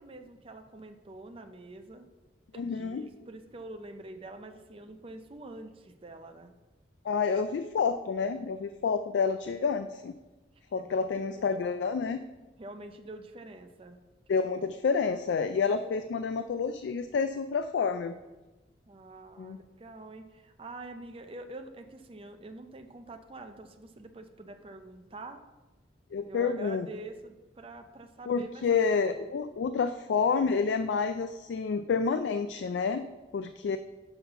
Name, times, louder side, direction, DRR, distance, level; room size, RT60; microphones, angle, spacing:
voice 1, 0.0-2.1 2.5-6.6 10.6-11.0 11.3-11.7 12.6-14.0 18.9-25.4 26.3-28.8, right 2 dB, 30° right, 6 dB, 0.5 m, -46 dB
voice 2, 2.6-3.0 7.0-10.1 10.7-12.2 14.3-18.1 19.4-19.6 26.1-26.9 28.3-33.8, left 5 dB, 80° left, 10 dB, 0.3 m, -29 dB
5.7 x 5.6 x 5.6 m, 1.1 s
head